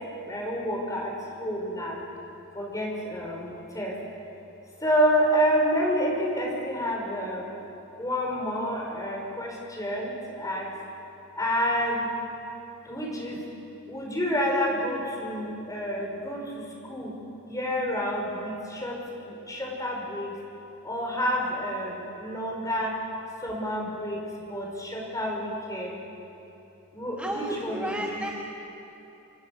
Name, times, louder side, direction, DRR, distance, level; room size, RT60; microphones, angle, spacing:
voice 1, 0.2-1.1 1.4-2.0 2.5-4.0 4.8-7.5 8.0-10.7 11.4-12.1 12.8-13.4 13.9-17.1 17.5-20.3 20.8-23.0 23.4-24.2 24.5-26.0 26.9-28.2, equal, 15° left, -1 dB, 5.0 m, -29 dB
voice 2, 27.2-28.3, right 1 dB, 5° right, -1 dB, 1.4 m, -32 dB
27.0 x 23.5 x 6.6 m, 2.9 s
head